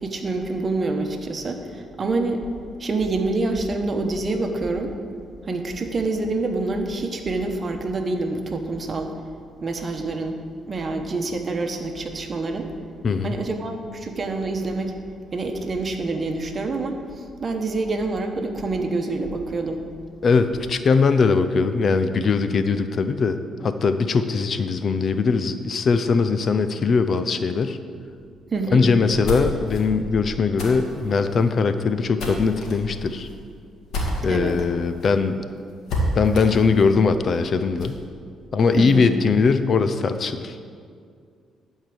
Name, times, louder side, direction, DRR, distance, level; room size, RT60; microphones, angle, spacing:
voice 1, 0.0-2.4 2.8-4.9 5.4-9.2 9.6-10.4 10.7-12.7 13.2-15.0 15.3-19.8 28.5-28.8 34.3-34.6 38.8-39.1, right 3 dB, 40° right, 4 dB, 1.2 m, -26 dB
voice 2, 13.0-13.3 20.2-27.8 28.7-33.3 34.2-35.3 36.1-38.0 38.5-40.6, left 4 dB, 50° left, 10 dB, 0.6 m, -20 dB
sound 1, 29.0-34.6 35.0-35.1 35.4-35.5 35.9-38.0, equal, 80° left, 2.3 m, -31 dB
12.0 x 4.6 x 7.8 m, 2.2 s
cardioid pair, 90°, 0 cm